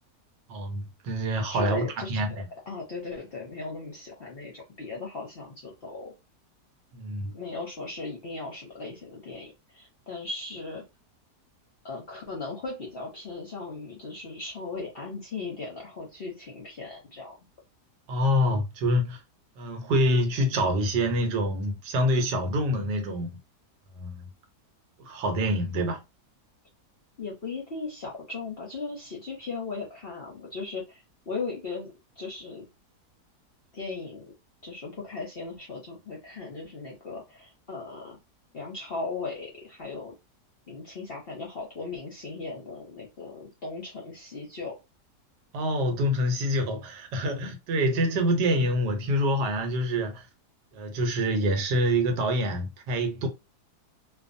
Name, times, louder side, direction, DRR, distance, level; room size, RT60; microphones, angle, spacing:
voice 1, 0.5-2.3 6.9-7.3 18.1-19.2 19.6-23.4 23.9-24.3 25.0-26.0 45.5-50.3 50.7-53.3, equal, 90° right, 1.4 m, -26 dB
voice 2, 1.5-2.1 2.7-6.1 7.2-10.8 11.8-17.4 27.2-32.7 33.7-34.3 34.6-38.2 38.5-40.1 40.7-44.7, left 3 dB, 50° left, 0.7 m, -37 dB
2.5 x 2.5 x 2.5 m
omnidirectional pair, 1.8 m